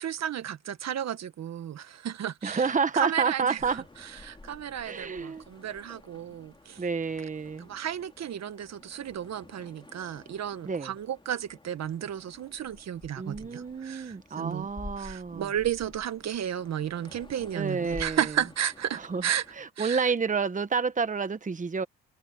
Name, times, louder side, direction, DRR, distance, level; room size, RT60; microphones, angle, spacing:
voice 1, 0.0-6.8 7.6-14.7 15.0-19.4 19.8-20.1, right 10 dB, 60° right, 1.5 m, -33 dB
voice 2, 2.4-3.8 4.8-5.4 6.8-7.7 10.6-10.9 13.2-15.5 17.5-18.2 18.9-19.2 19.6-21.8, right 5 dB, 25° right, 1.3 m, -29 dB
sound 1, 3.6-19.6, left 2 dB, 15° left, 2.7 m, -50 dB
cardioid pair, 90°, 30 cm